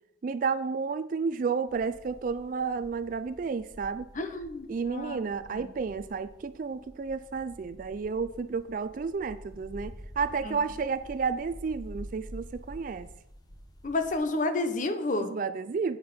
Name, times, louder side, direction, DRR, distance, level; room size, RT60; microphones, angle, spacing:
voice 1, 0.2-4.1 4.7-13.1 15.3-16.0, right 5 dB, 45° right, 13 dB, 0.3 m, -31 dB
sound 1, 1.7-14.1, equal, 20° left, 1.1 m, -48 dB
voice 2, 4.1-5.2 5.5-5.7 10.4-10.6 13.8-15.3, left 2 dB, 40° left, 8 dB, 0.9 m, -30 dB
8.7 x 8.7 x 4.3 m, 0.83 s
head